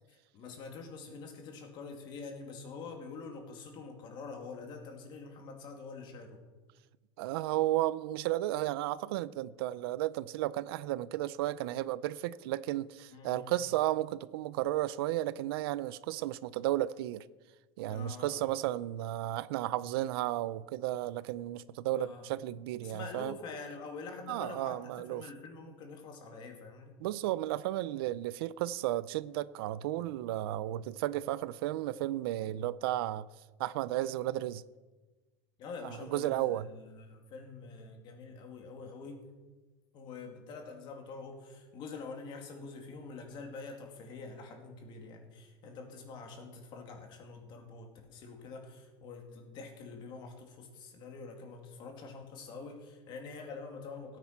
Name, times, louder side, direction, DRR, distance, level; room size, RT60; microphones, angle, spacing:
voice 1, 0.1-6.4 13.1-13.5 17.9-18.4 22.0-22.3 22.8-27.0 35.6-39.2 39.9-54.2, left 4 dB, 40° left, 2.6 m, -46 dB
voice 2, 7.2-17.2 17.8-23.3 24.3-25.2 27.0-33.3 33.6-34.6 35.8-36.7, right 14 dB, 85° right, 0.6 m, -33 dB
16.5 x 9.2 x 5.9 m
cardioid pair, 165°, 12 cm